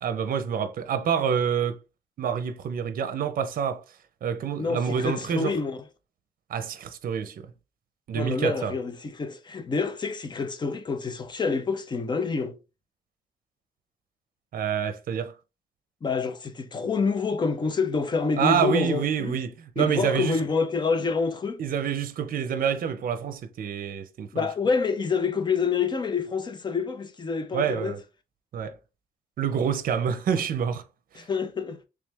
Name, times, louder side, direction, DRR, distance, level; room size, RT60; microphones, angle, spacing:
voice 1, 0.0-1.8 2.2-5.6 6.5-7.5 8.1-8.7 14.5-15.3 18.4-20.4 21.6-24.5 27.5-28.0 28.5-28.8 29.4-30.9 31.1-31.3, right 7 dB, 60° right, 0.6 m, -27 dB
voice 2, 4.6-5.8 8.1-12.6 16.0-19.4 19.8-21.6 24.3-27.9 31.2-31.8, left 5 dB, 25° left, 0.6 m, -27 dB
3.4 x 3.2 x 3.4 m
cardioid pair, 130°, 17 cm